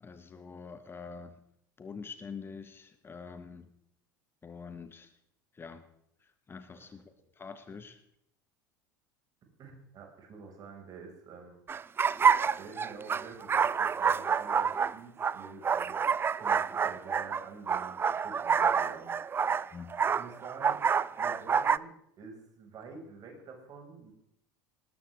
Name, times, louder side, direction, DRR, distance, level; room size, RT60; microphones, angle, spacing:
voice 1, 0.0-1.4 1.8-3.7 4.4-5.1 5.5-5.8 6.2-7.0 7.3-8.0 19.7-19.9, left 5 dB, 20° left, 9 dB, 1.5 m, -45 dB
voice 2, 9.6-11.6 12.6-16.0 16.3-19.1 20.0-20.8 21.2-24.1, right 4 dB, 40° right, 2 dB, 6.1 m, -48 dB
sound 1, 11.7-21.8, right 6 dB, 20° right, 0.5 m, -28 dB
19.5 x 19.5 x 3.7 m, 0.74 s
figure-of-eight pair, 70°, 10 cm